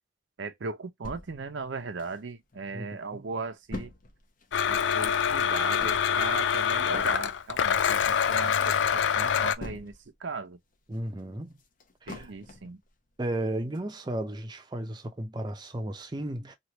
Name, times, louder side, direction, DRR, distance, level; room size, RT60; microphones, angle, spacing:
voice 1, 0.4-3.9 4.7-9.9 10.2-10.6 12.1-12.8, right 4 dB, 80° right, 0.6 m, -37 dB
sound 1, 1.0-2.6 3.0-3.1 3.2-10.3 10.6-12.8 13.2-13.3 13.7-13.8, left 2 dB, 45° left, 0.8 m, -44 dB
Domestic sounds home sounds, 4.5-9.6, left 7 dB, 80° left, 0.4 m, -25 dB
voice 2, 10.9-11.5 12.0-12.3 13.2-16.5, right 1 dB, 25° right, 0.6 m, -34 dB
3.2 x 2.4 x 2.8 m
head